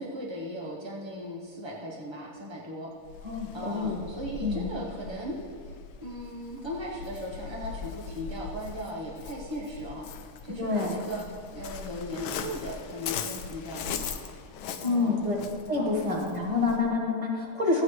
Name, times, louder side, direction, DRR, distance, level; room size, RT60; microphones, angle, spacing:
voice 1, 0.0-2.9 3.5-5.7 6.0-11.2 11.5-14.2 14.8-15.2 15.7-15.9, equal, 40° right, -4 dB, 0.3 m, -38 dB
Waves surf, 3.0-16.9, left 6 dB, 75° left, 1.4 m, -40 dB
voice 2, 3.2-4.0 4.4-4.7 10.6-11.0 14.8-15.4 15.7-17.8, left 3 dB, 20° right, -1 dB, 0.9 m, -27 dB
14.5 x 8.3 x 3.2 m, 2.2 s
omnidirectional pair, 2.4 m